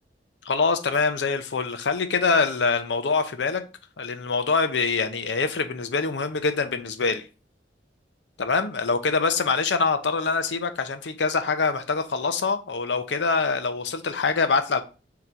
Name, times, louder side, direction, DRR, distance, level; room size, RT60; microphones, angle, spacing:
voice 1, 0.5-3.6 4.0-7.2 8.4-14.8, left 4 dB, 85° left, 0.6 m, -24 dB
3.8 x 2.9 x 4.4 m
head